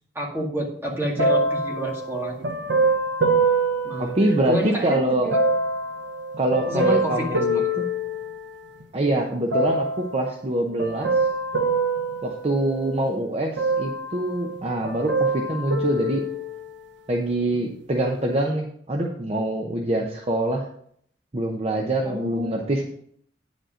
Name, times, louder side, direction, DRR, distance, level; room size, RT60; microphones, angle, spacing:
voice 1, 0.2-2.4 3.8-4.1 4.5-5.4 6.7-7.8 22.0-22.8, equal, 15° right, -2 dB, 2.0 m, -29 dB
sound 1, 1.2-4.8 5.3-8.8 9.5-10.2 10.8-13.1 13.6-14.6 14.8-16.9 17.5-17.6, right 2 dB, 85° right, 0.9 m, -25 dB
voice 2, 4.0-5.3 6.4-7.9 8.9-11.1 12.2-16.2 17.1-20.7 21.3-22.9, right 1 dB, 35° right, 1 dB, 0.8 m, -25 dB
9.4 x 5.2 x 5.0 m, 0.65 s
head